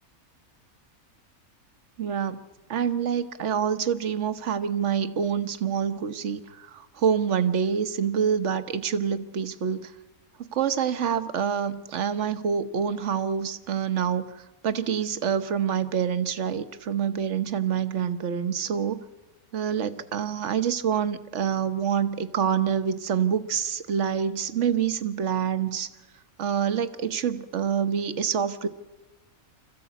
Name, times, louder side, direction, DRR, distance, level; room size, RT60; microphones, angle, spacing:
voice 1, 2.0-2.4 2.7-9.9 10.4-19.0 19.5-25.9 26.4-28.7, right 7 dB, 55° right, 12 dB, 1.2 m, -26 dB
26.0 x 14.5 x 8.3 m, 1.2 s
omnidirectional pair, 1.5 m